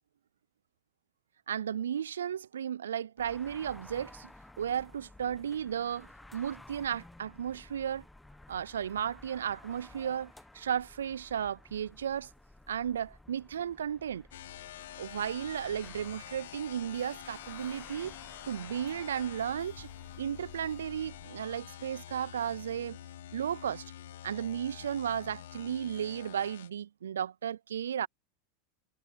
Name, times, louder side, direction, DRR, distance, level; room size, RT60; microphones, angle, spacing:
voice 1, 1.5-4.3 4.6-8.0 8.5-12.3 12.7-14.3 15.0-18.1 18.5-19.9 20.2-23.0 23.3-23.8 24.2-28.1, right 9 dB, 85° right, 0.3 m, -34 dB
sound 1, 3.2-21.3, left 2 dB, 5° left, 1.1 m, -55 dB
sound 2, 14.3-26.7, left 12 dB, 75° left, 1.4 m, -47 dB
sound 3, 15.4-25.3, left 17 dB, 45° left, 6.3 m, -68 dB
hypercardioid pair, 95°, 0 cm